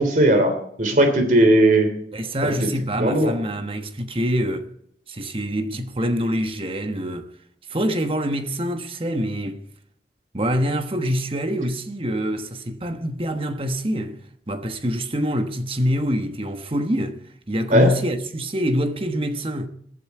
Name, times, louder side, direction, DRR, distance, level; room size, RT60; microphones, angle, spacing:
voice 1, 0.0-1.9 2.4-2.5 2.9-3.3 17.7-17.9, right 1 dB, 45° right, 3.0 m, -17 dB
voice 2, 2.1-4.7 5.1-7.3 7.7-9.7 10.3-14.2 14.5-17.2 17.5-19.7, equal, 30° right, 1.2 m, -25 dB
20.5 x 12.5 x 4.7 m
head